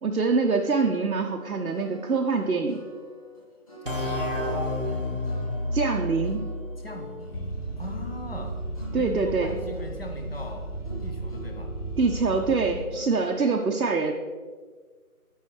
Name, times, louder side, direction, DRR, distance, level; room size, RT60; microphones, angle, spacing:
voice 1, 0.0-2.8 5.7-6.5 8.9-9.5 12.0-14.1, right 4 dB, 90° right, 2 dB, 0.8 m, -25 dB
sound 1, 1.1-13.2, left 2 dB, 25° left, 1.8 m, -46 dB
voice 2, 3.8-5.2 6.8-8.6 9.0-10.7 11.0-11.7, left 1 dB, 40° left, 3 dB, 0.9 m, -40 dB
sound 2, 3.9-7.4, left 1 dB, 35° right, 0.8 m, -30 dB
sound 3, 7.3-12.8, right 2 dB, 85° left, 1.1 m, -35 dB
10.0 x 5.5 x 3.2 m, 1.5 s
figure-of-eight pair, 170°, 45 cm